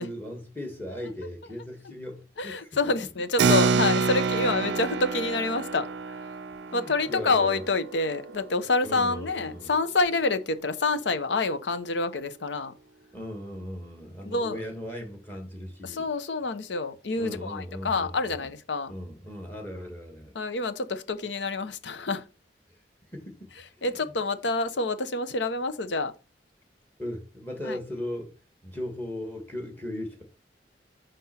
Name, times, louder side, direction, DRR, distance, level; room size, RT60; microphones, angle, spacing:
voice 1, 0.0-2.7 6.7-7.6 8.8-9.7 13.1-16.1 17.2-18.5 18.9-20.3 22.7-22.8 23.1-24.1 27.0-28.3 28.6-30.2, left 1 dB, 10° left, 1.5 m, -38 dB
voice 2, 2.4-5.9 6.7-12.7 14.2-14.6 15.8-18.9 20.3-22.2 23.8-26.1 27.6-27.8, left 3 dB, 90° left, 0.8 m, -27 dB
Keyboard (musical), 3.4-9.4, right 5 dB, 85° right, 0.4 m, -28 dB
5.7 x 5.3 x 4.3 m
head